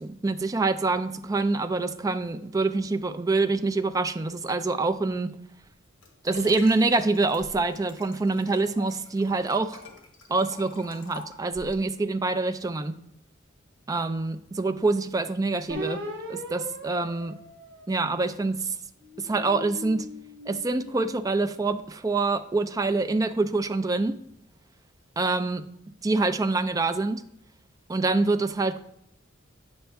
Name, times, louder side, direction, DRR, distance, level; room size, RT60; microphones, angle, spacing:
voice 1, 0.0-5.4 6.2-9.8 10.3-13.0 13.9-16.0 16.3-17.3 17.9-18.8 19.2-20.1 20.5-24.2 25.2-25.6 26.0-27.2 27.9-28.8, right 3 dB, 15° right, 10 dB, 0.3 m, -26 dB
Liquid, 5.6-11.9 12.5-12.6, left 2 dB, 65° left, 1.3 m, -46 dB
sound 1, 15.7-18.4 19.0-21.5, equal, 55° right, 1.6 m, -39 dB
8.9 x 5.3 x 3.5 m, 0.76 s
head